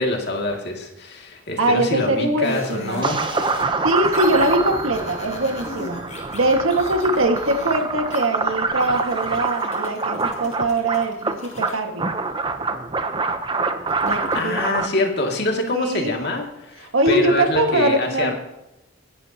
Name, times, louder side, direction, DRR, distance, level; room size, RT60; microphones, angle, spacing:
voice 1, 0.0-3.2 14.3-18.3, left 2 dB, 50° left, 1 dB, 2.4 m, -25 dB
voice 2, 1.6-3.1 3.8-6.0 6.3-12.1 14.0-14.6 15.7-16.1 16.8-18.3, right 1 dB, 80° right, 4 dB, 1.8 m, -22 dB
sound 1, 2.4-8.2 8.8-11.7 13.9-14.5, left 2 dB, 35° left, 2.4 m, -38 dB
sound 2, 3.0-14.9, right 4 dB, 25° right, 0.8 m, -25 dB
24.5 x 11.0 x 2.9 m, 0.92 s
head